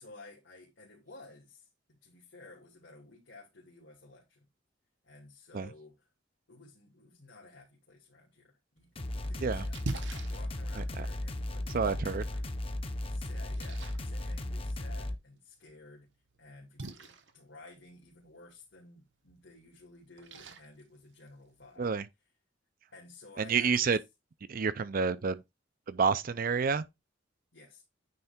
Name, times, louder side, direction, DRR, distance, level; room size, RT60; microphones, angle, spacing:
voice 1, 0.0-4.5 5.0-6.1 6.5-9.8 10.3-12.5 13.1-16.1 16.4-21.9 22.9-23.9 27.5-27.8, left 2 dB, 80° left, 2.5 m, -54 dB
Splash splatter, 8.8-21.8, right 2 dB, 70° right, 1.1 m, -48 dB
sound 1, 9.0-15.2, left 1 dB, 30° left, 0.8 m, -36 dB
voice 2, 10.8-11.1 11.7-12.2 21.8-22.1 23.4-24.0 24.5-25.4 25.9-26.8, right 5 dB, 50° right, 0.5 m, -29 dB
9.4 x 3.3 x 4.3 m
head